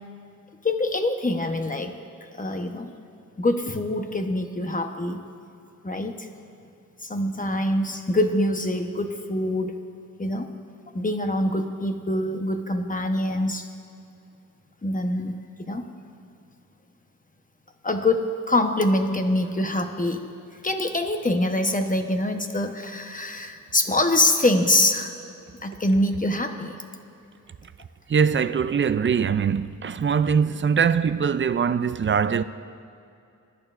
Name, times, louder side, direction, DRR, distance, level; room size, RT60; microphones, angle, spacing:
voice 1, 0.6-1.9 2.4-2.9 3.4-5.2 5.8-6.1 7.0-9.8 10.2-10.5 10.9-13.7 14.8-15.3 15.7-15.8 17.8-20.3 20.6-25.1 25.6-26.7, left 1 dB, 25° left, 1.0 m, -24 dB
voice 2, 28.1-32.4, right 6 dB, 40° right, 0.4 m, -22 dB
21.0 x 11.0 x 2.5 m
cardioid pair, 70°, 32 cm